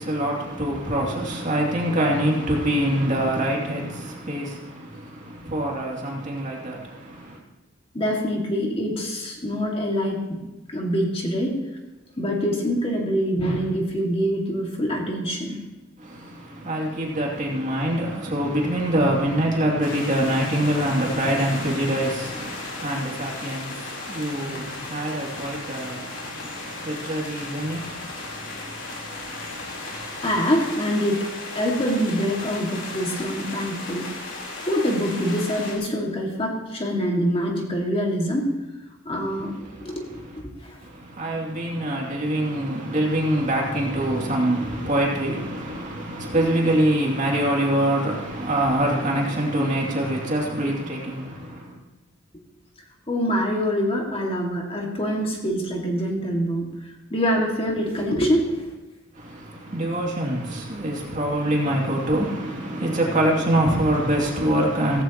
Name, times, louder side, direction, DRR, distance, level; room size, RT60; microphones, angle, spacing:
voice 1, 0.0-7.4 16.0-30.2 39.3-40.4 40.8-51.8 59.1-65.0, right 1 dB, 40° right, 2.6 m, -25 dB
voice 2, 7.9-10.4 10.7-11.6 12.2-15.6 24.5-24.6 30.2-31.3 31.5-34.1 34.7-38.5 39.1-39.5 39.8-40.1 40.6-40.8 53.1-58.7, equal, 30° left, 2.0 m, -25 dB
sound 1, 19.8-35.7, left 2 dB, 65° left, 3.8 m, -35 dB
16.0 x 15.5 x 3.0 m
head